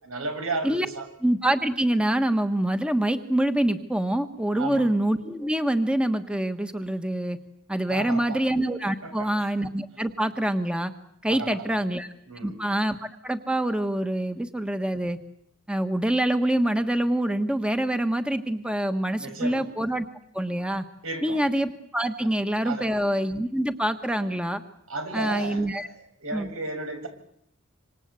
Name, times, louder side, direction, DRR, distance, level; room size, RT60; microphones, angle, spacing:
voice 1, 0.0-1.1 4.5-4.9 7.9-8.4 9.0-9.3 11.3-11.6 12.3-12.6 19.2-19.6 21.0-21.4 22.2-22.3 22.6-22.9 24.9-27.1, right 3 dB, 85° right, 6 dB, 7.4 m, -34 dB
voice 2, 1.2-7.4 7.7-10.9 11.2-12.1 12.4-13.0 13.2-15.2 15.7-20.1 20.3-20.8 21.2-24.6 25.1-25.9 26.3-26.5, right 1 dB, 5° right, 8 dB, 1.4 m, -25 dB
27.0 x 26.0 x 8.3 m, 0.71 s
head